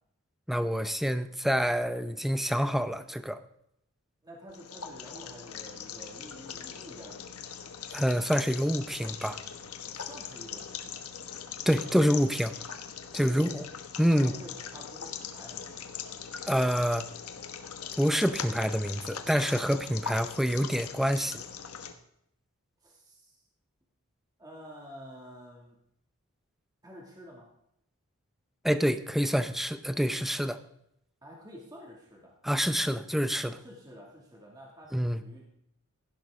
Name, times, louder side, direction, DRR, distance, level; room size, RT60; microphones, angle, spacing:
voice 1, 0.5-3.4 7.9-9.4 11.7-12.5 13.1-13.7 14.0-14.3 16.5-17.0 18.0-21.4 28.6-30.6 32.4-33.5 34.9-35.2, equal, ahead, 11 dB, 0.6 m, -27 dB
voice 2, 4.2-7.5 9.9-11.0 13.2-13.6 14.1-15.9 22.8-23.4 24.4-25.8 26.8-27.5 31.2-32.3 33.4-35.5, equal, 20° right, -2 dB, 2.3 m, -49 dB
sound 1, 4.5-21.9, left 7 dB, 90° left, 1.2 m, -41 dB
15.5 x 10.5 x 3.7 m, 0.76 s
head